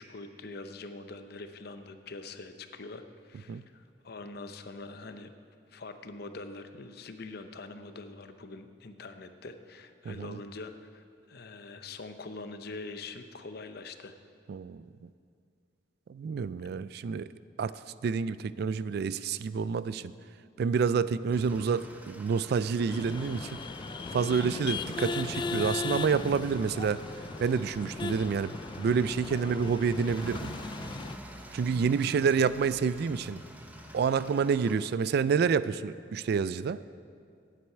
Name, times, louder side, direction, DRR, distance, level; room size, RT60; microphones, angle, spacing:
voice 1, 0.0-5.3 5.7-14.2, left 3 dB, 60° left, 9 dB, 0.7 m, -44 dB
voice 2, 10.1-10.4 14.5-15.1 16.1-17.3 17.6-20.1 20.6-23.6 24.1-27.0 27.4-30.5 31.5-33.4 33.9-36.8, right 6 dB, 60° right, 16 dB, 0.3 m, -28 dB
sound 1, 21.3-34.8, equal, 10° right, 0.8 m, -47 dB
sound 2, 22.9-31.2, left 4 dB, 25° left, 0.3 m, -37 dB
8.5 x 7.9 x 9.1 m, 2.3 s
head